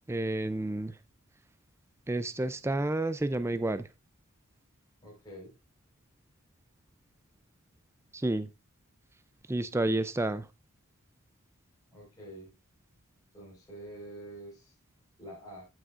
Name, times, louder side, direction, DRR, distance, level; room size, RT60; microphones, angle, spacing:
voice 1, 0.1-0.9 2.1-3.9 8.1-8.5 9.5-10.4, right 2 dB, 10° right, 0.4 m, -30 dB
voice 2, 5.0-5.5 11.9-12.5 13.3-14.7 15.2-15.7, right 1 dB, 15° left, 4.4 m, -46 dB
14.5 x 6.2 x 2.4 m
head